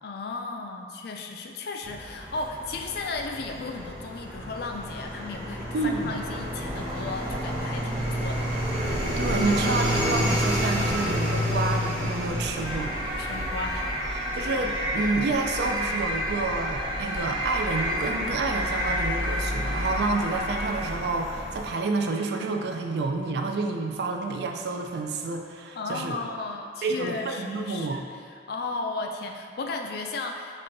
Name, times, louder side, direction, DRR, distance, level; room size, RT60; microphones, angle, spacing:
voice 1, 0.0-8.5 13.2-13.9 25.7-28.0 28.5-30.6, left 3 dB, 55° left, 3 dB, 0.4 m, -35 dB
sound 1, 1.8-21.7, equal, 40° right, 1.0 m, -31 dB
voice 2, 5.7-6.2 9.2-13.0 14.3-26.2 26.8-28.0, right 3 dB, 60° right, 4 dB, 0.3 m, -29 dB
sound 2, 12.6-21.1, equal, 25° right, 0.6 m, -31 dB
5.4 x 3.3 x 2.6 m, 2.1 s
head